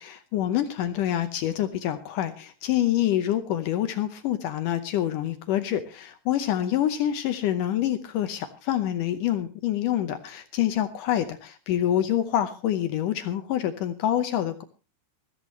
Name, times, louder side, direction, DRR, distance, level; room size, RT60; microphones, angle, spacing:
voice 1, 0.0-14.6, left 11 dB, 80° left, 9 dB, 1.9 m, -26 dB
20.5 x 14.5 x 3.1 m, 0.30 s
omnidirectional pair, 4.8 m